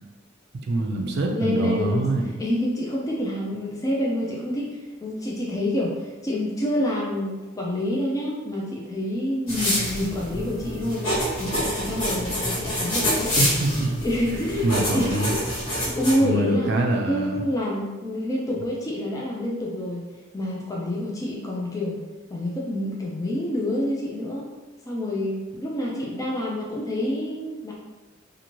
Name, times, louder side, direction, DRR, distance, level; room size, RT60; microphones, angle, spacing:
voice 1, 0.7-2.3 13.4-14.0 14.6-15.3 16.2-17.4, right 2 dB, 55° right, 1 dB, 0.4 m, -24 dB
voice 2, 1.3-11.1 11.4-13.5 14.0-15.5 15.8-16.7 17.1-20.1 20.3-22.0 22.3-24.4 24.9-27.7, left 1 dB, 15° left, -4 dB, 0.4 m, -27 dB
sound 1, 9.5-16.1, equal, 85° left, 1.4 m, -27 dB
2.7 x 2.6 x 2.9 m, 1.2 s
head